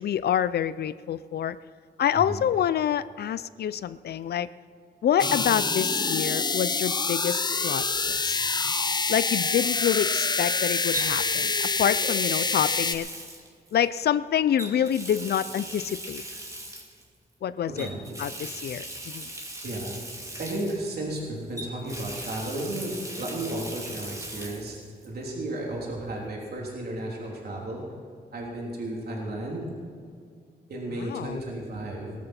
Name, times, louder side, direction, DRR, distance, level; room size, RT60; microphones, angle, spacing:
voice 1, 0.0-1.6 2.0-4.5 5.0-8.4 9.1-13.1 13.7-16.2 17.4-17.9 18.2-19.3 31.0-31.4, left 9 dB, 75° left, 16 dB, 0.5 m, -27 dB
sound 1, 5.2-13.0, left 4 dB, 25° left, 0.6 m, -26 dB
Water tap faucet, 8.0-8.2 10.9-14.0 14.6-17.0 17.8-21.2 21.6-24.7 25.0-25.1 26.7-26.8, right 1 dB, 20° right, 2.4 m, -39 dB
voice 2, 17.7-18.0 19.6-20.0 20.4-27.8 28.3-29.6 30.7-32.1, right 1 dB, 70° right, -3 dB, 3.4 m, -33 dB
19.0 x 13.5 x 4.4 m, 2.2 s
wide cardioid pair, 110°, 17 cm